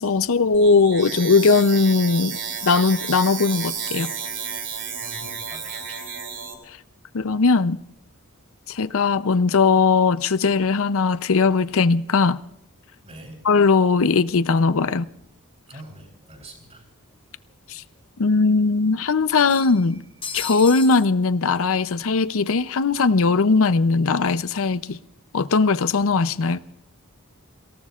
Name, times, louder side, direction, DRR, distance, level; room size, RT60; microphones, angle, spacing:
voice 1, 0.0-4.1 7.1-7.8 8.7-12.4 13.5-15.1 17.7-17.8 18.2-20.0 20.3-25.0 25.3-26.6, left 4 dB, 65° left, 0.6 m, -19 dB
sound 1, 0.5-6.5, right 6 dB, 60° right, 3.8 m, -32 dB
voice 2, 5.0-6.1 13.0-13.4 15.7-16.9, right 1 dB, 30° right, 7.8 m, -44 dB
sound 2, 15.9-16.0 16.3-16.4 17.5-17.6 17.9-18.0 19.3-21.1, left 6 dB, 25° left, 1.2 m, -35 dB
29.5 x 18.0 x 2.4 m
head